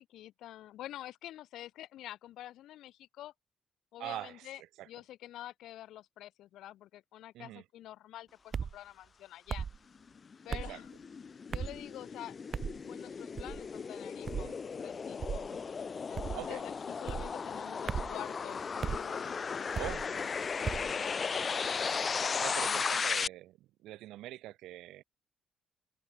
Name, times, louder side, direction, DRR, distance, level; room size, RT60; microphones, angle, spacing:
voice 1, 0.0-3.3 3.9-9.7 10.4-10.9 11.5-12.4 12.8-15.4 16.1-20.3 20.8-21.4 22.6-23.0, left 13 dB, 85° left, 2.1 m, -48 dB
voice 2, 4.0-4.5 4.8-4.9 7.3-7.6 10.5-10.8 14.4-14.5 16.3-16.6 19.8-20.0 22.4-25.0, right 15 dB, 90° right, 3.8 m, -43 dB
sound 1, 8.5-8.8 9.5-9.8 10.5-10.7 11.5-11.8 12.5-12.8 13.4-13.7 14.3-14.5 15.2-15.5 16.1-16.5 17.1-17.3 17.9-18.2 18.8-19.0 19.7-20.0 20.6-20.9, right 6 dB, 45° right, 1.9 m, -36 dB
sound 2, 10.1-23.3, left 5 dB, 40° left, 0.5 m, -36 dB
cardioid pair, 90°, 0 cm